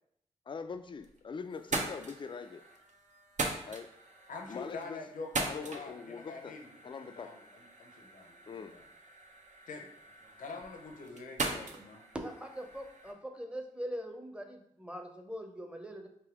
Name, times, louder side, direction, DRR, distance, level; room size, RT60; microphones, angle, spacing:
voice 1, 0.5-2.6 3.7-4.0 4.5-5.0 5.5-6.6 6.8-7.3 8.5-8.7, left 5 dB, 35° left, 10 dB, 0.4 m, -42 dB
sound 1, 0.7-1.2 1.5-13.1, right 3 dB, 55° right, 0.6 m, -41 dB
voice 2, 4.3-8.8 9.7-9.9 10.4-12.0, left 4 dB, 70° left, 2 dB, 0.7 m, -45 dB
voice 3, 12.1-16.1, equal, 10° right, 4 dB, 0.7 m, -42 dB
3.4 x 2.7 x 3.7 m, 0.71 s
supercardioid pair, 40°, 14 cm